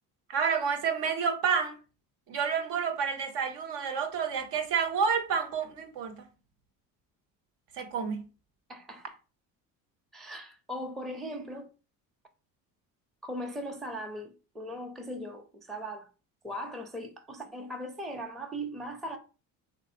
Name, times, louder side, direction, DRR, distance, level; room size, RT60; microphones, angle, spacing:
voice 1, 0.3-1.8 2.3-6.3 7.8-8.3, right 6 dB, 60° right, 0.7 m, -29 dB
voice 2, 8.7-9.1 10.1-11.7 13.2-16.1 16.4-19.2, equal, ahead, 0.4 m, -39 dB
3.3 x 2.6 x 2.6 m
supercardioid pair, 70°, 46 cm